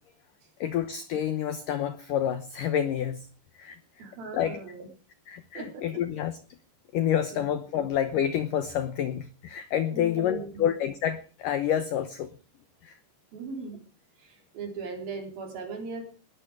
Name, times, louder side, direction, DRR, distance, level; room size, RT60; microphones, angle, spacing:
voice 1, 0.6-3.3 3.5-3.8 4.3-4.6 5.3-6.4 6.9-12.3 12.8-13.0, left 10 dB, 85° left, 12 dB, 1.9 m, -28 dB
voice 2, 4.0-4.9 5.6-6.0 7.3-7.4 9.9-10.7 13.3-13.8 14.2-16.0, right 4 dB, 55° right, 4 dB, 5.4 m, -39 dB
20.0 x 12.5 x 4.9 m, 0.37 s
omnidirectional pair, 5.2 m